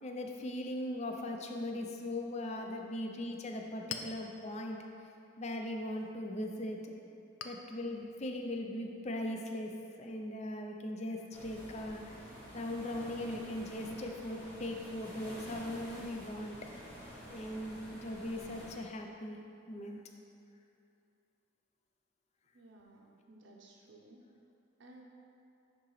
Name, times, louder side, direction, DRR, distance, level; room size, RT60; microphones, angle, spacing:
voice 1, 0.0-4.8 5.4-6.9 7.4-9.7 10.0-12.3 12.5-16.6 17.3-19.4 19.7-20.0, left 1 dB, 35° left, 3 dB, 0.5 m, -39 dB
Chink clink, 3.3-10.5, left 6 dB, 90° left, 0.4 m, -51 dB
sound 1, 11.3-18.7, equal, 10° left, 1.3 m, -49 dB
voice 2, 22.5-24.2 24.8-25.0, right 2 dB, 65° right, -1 dB, 0.7 m, -57 dB
10.5 x 3.9 x 3.1 m, 2.6 s
head